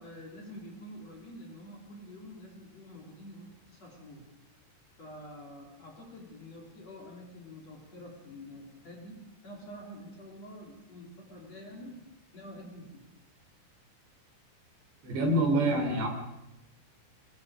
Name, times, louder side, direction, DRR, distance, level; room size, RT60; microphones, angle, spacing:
voice 1, 0.0-4.3 5.0-12.1 12.3-13.0, equal, 35° left, -1 dB, 4.3 m, -47 dB
voice 2, 15.0-16.1, right 1 dB, 65° right, 3 dB, 5.9 m, -26 dB
23.5 x 22.0 x 5.1 m, 0.93 s
omnidirectional pair, 5.3 m